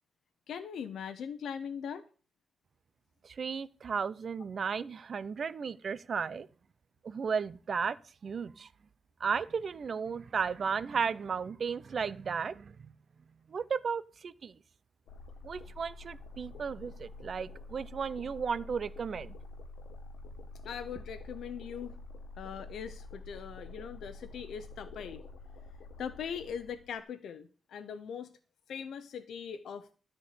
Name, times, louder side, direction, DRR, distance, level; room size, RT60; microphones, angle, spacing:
voice 1, 0.5-2.0 20.6-22.0 22.4-25.2 26.0-28.3 28.7-29.9, left 7 dB, 75° left, 0.8 m, -41 dB
voice 2, 3.2-6.5 7.0-8.0 8.2-8.7 9.2-12.9 13.5-14.5 15.4-19.3, right 6 dB, 45° right, 0.6 m, -34 dB
sound 1, 15.1-27.0, left 2 dB, 90° left, 1.5 m, -48 dB
13.0 x 4.5 x 8.5 m
wide cardioid pair, 140°, 0 cm